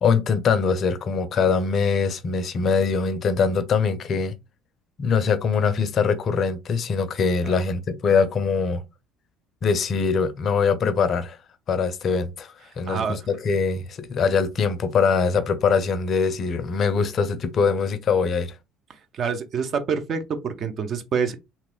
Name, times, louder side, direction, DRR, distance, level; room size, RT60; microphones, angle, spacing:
voice 1, 0.0-4.3 5.0-8.8 9.6-11.4 11.7-18.5, left 5 dB, 45° left, 0.4 m, -22 dB
voice 2, 12.9-13.2 19.1-21.3, right 6 dB, 45° right, 0.5 m, -26 dB
3.0 x 2.9 x 2.2 m
figure-of-eight pair, 60°, 0 cm